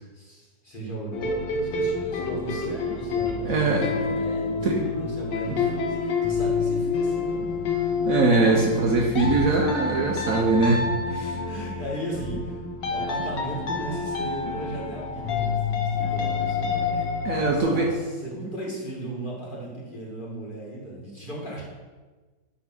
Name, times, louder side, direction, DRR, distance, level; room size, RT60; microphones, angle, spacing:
voice 1, 0.1-7.8 8.6-9.1 10.3-10.5 11.2-17.0 17.5-21.6, right 1 dB, 30° left, -4 dB, 1.9 m, -36 dB
sound 1, 1.1-17.6, left 4 dB, 80° left, 1.6 m, -28 dB
voice 2, 3.4-3.9 4.6-4.8 8.1-10.8 11.1-11.4 16.9-17.9, right 3 dB, 60° right, 0 dB, 1.1 m, -22 dB
9.8 x 3.5 x 6.0 m, 1.3 s
omnidirectional pair, 1.9 m